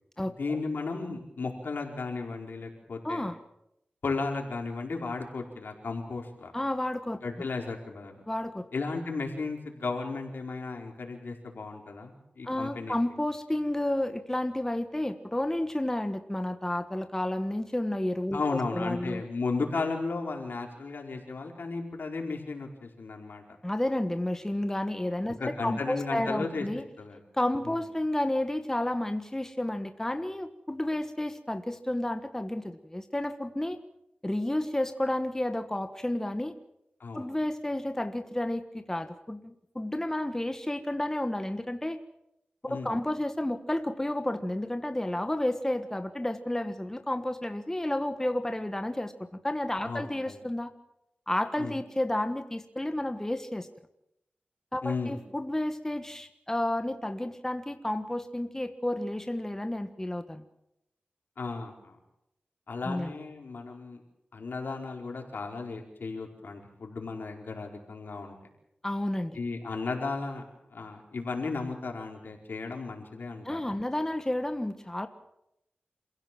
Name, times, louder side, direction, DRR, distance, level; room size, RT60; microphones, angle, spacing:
voice 1, 0.4-3.3 4.0-6.5 7.2-8.2 8.7-13.0 18.3-23.4 25.4-26.6 27.0-27.2 27.6-27.8 37.0-37.3 42.7-42.9 49.8-50.4 51.6-51.8 54.8-55.2 61.4-62.0 62.7-64.0 64.3-68.4 69.3-70.4 70.7-73.8, left 3 dB, 80° left, 1 dB, 4.8 m, -35 dB
voice 2, 3.0-3.4 6.5-7.2 8.3-8.7 12.4-19.2 23.6-26.8 27.3-33.8 34.2-36.5 37.1-42.0 42.6-50.7 51.3-53.7 54.7-60.4 62.8-63.1 68.8-69.4 73.4-75.1, left 1 dB, 15° left, 8 dB, 1.5 m, -31 dB
27.5 x 16.5 x 7.7 m, 0.83 s
wide cardioid pair, 80°, 3 cm